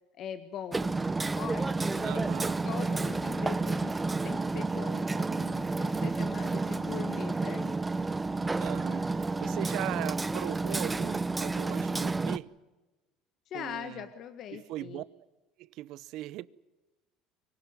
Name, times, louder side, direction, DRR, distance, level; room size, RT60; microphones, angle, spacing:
voice 1, 0.2-2.3 2.6-7.8 13.5-15.0, left 9 dB, 55° left, 1.6 m, -42 dB
Hammer, 0.7-12.4, right 3 dB, 15° right, 0.8 m, -30 dB
voice 2, 2.0-2.6 8.6-12.5 13.5-14.1 14.5-15.0 15.6-16.5, right 16 dB, 65° right, 0.8 m, -39 dB
24.0 x 17.0 x 9.7 m
supercardioid pair, 100°, 0 cm